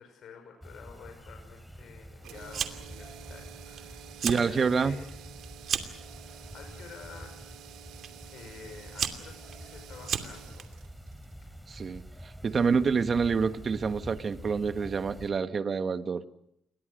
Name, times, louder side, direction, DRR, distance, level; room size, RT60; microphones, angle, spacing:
voice 1, 0.0-5.1 6.0-7.3 8.3-10.7 12.4-12.8, left 6 dB, 65° left, 4 dB, 6.1 m, -49 dB
sound 1, 0.6-15.3, equal, ahead, 3.8 m, -47 dB
sound 2, 2.2-12.3, right 10 dB, 90° right, 2.2 m, -50 dB
Fire, 2.5-3.0 3.3-3.8 4.1-4.5 4.9-6.0 6.8-7.2 8.0-8.1 8.7-10.6, right 8 dB, 60° right, 2.7 m, -33 dB
voice 2, 4.2-5.0 11.7-16.2, right 5 dB, 45° right, 10 dB, 1.5 m, -27 dB
28.5 x 22.0 x 6.6 m, 0.77 s
cardioid pair, 90°, 0 cm